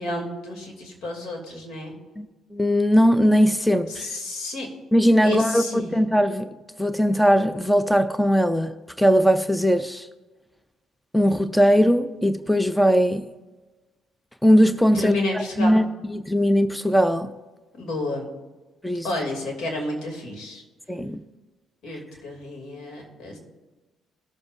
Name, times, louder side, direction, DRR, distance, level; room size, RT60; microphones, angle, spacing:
voice 1, 0.0-1.9 3.9-4.7 5.2-5.9 14.9-15.8 17.8-18.3 19.0-20.6 21.8-23.4, left 2 dB, 70° left, 2.9 m, -30 dB
voice 2, 2.5-4.1 4.9-6.5 6.8-10.1 11.1-13.2 14.4-17.3 18.8-19.1 20.9-21.2, equal, 5° left, 0.5 m, -20 dB
19.0 x 6.9 x 2.7 m
supercardioid pair, 80°, 0 cm